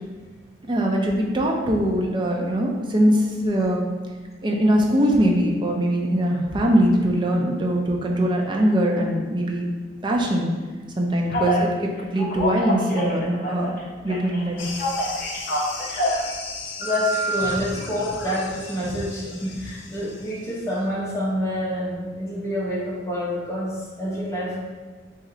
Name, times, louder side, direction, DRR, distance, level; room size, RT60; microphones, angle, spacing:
voice 1, 0.7-3.8 4.4-9.7 10.0-10.5 11.0-11.7 12.1-14.6, equal, 25° right, -1 dB, 0.5 m, -22 dB
Telephone, 11.3-11.6 12.1-13.8 14.1-16.2 16.8-17.5, equal, 45° left, 0.7 m, -26 dB
sound 1, 14.6-20.7, left 4 dB, 85° left, 0.6 m, -37 dB
voice 2, 16.8-24.6, left 1 dB, 15° left, -6 dB, 0.9 m, -27 dB
3.1 x 2.8 x 3.8 m, 1.4 s
head